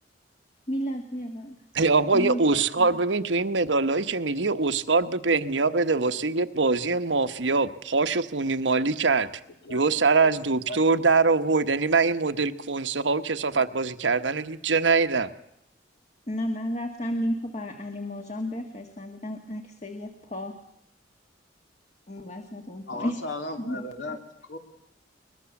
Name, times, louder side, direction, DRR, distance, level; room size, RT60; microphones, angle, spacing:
voice 1, 0.7-1.6 2.1-2.9 16.3-20.6 22.1-23.2 23.6-23.9, equal, 35° left, 5 dB, 1.7 m, -32 dB
voice 2, 1.7-9.3 9.7-15.3, right 4 dB, 80° right, 10 dB, 1.1 m, -23 dB
voice 3, 10.2-11.0 13.5-13.7 22.9-24.2 24.5-24.6, left 2 dB, 75° left, 6 dB, 2.9 m, -37 dB
23.0 x 21.0 x 7.1 m, 0.77 s
head